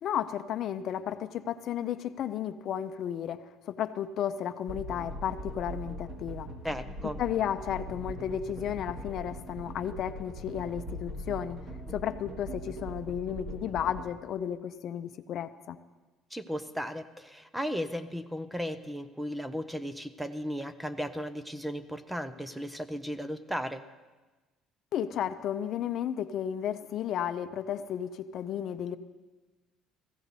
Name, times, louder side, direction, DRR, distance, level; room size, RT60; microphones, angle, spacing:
voice 1, 0.0-6.5 7.2-11.6 11.9-15.8 24.9-29.0, left 9 dB, 50° left, 10 dB, 0.6 m, -33 dB
sound 1, 4.7-14.1, equal, 40° right, 1.8 m, -41 dB
voice 2, 6.6-7.2 16.3-23.8, equal, 5° right, 11 dB, 0.5 m, -35 dB
16.0 x 15.0 x 4.1 m, 1.2 s
cardioid pair, 145°, 0 cm